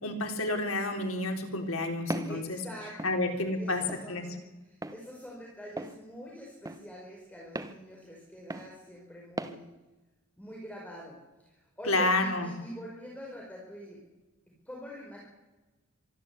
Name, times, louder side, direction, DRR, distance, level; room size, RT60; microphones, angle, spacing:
voice 1, 0.0-2.6 3.0-3.8 4.1-4.3 11.9-12.5, left 2 dB, 80° left, 4 dB, 3.9 m, -29 dB
Walk footsteps, 2.1-2.4 3.0-3.2 3.9-4.1 4.8-5.0 5.8-6.0 6.7-6.8 7.6-7.8 8.5-8.7 9.4-9.6, right 2 dB, 15° right, 1.2 m, -36 dB
voice 2, 2.3-9.6 10.4-11.2 11.5-14.0 14.6-15.2, equal, 5° left, -3 dB, 5.1 m, -45 dB
24.5 x 13.0 x 8.4 m, 1.1 s
head